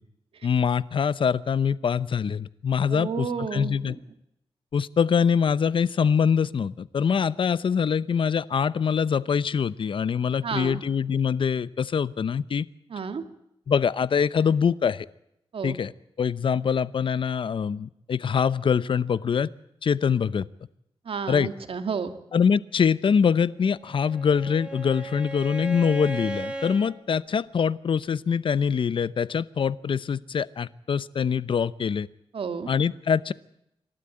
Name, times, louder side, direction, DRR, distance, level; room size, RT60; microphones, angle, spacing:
voice 1, 0.4-4.0 4.7-12.7 13.7-15.1 15.6-15.9 16.2-19.5 19.8-20.5 21.3-21.5 22.3-32.1 32.7-33.3, left 6 dB, 60° left, 18 dB, 0.7 m, -24 dB
voice 2, 2.9-3.9 10.4-10.8 12.9-13.2 15.5-15.8 21.1-22.1 32.3-32.7, right 6 dB, 70° right, 9 dB, 1.9 m, -31 dB
Bowed string instrument, 23.7-26.9, right 2 dB, 10° right, 3.8 m, -36 dB
27.0 x 12.5 x 8.8 m, 0.79 s
cardioid pair, 85°, 10 cm